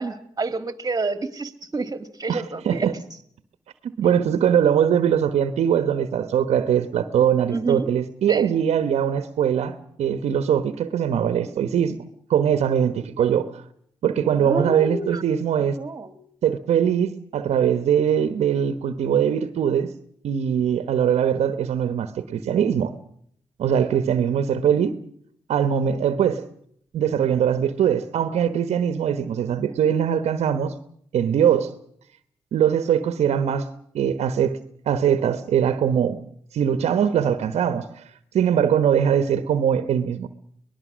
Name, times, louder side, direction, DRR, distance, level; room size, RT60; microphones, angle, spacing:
voice 1, 0.0-2.9 7.5-7.9 8.3-8.4 13.2-13.3 14.4-15.2 15.8-16.2, right 3 dB, 35° right, 2.3 m, -29 dB
voice 2, 2.3-2.9 3.8-12.0 12.3-13.6 14.0-15.8 16.4-19.9 20.2-22.9 23.6-25.0 25.5-26.5 26.9-30.7 31.1-31.7 32.5-33.7 33.9-36.2 36.5-37.9 38.3-40.3, right 8 dB, 75° right, 1.2 m, -21 dB
24.0 x 20.0 x 6.3 m
supercardioid pair, 55°, 11 cm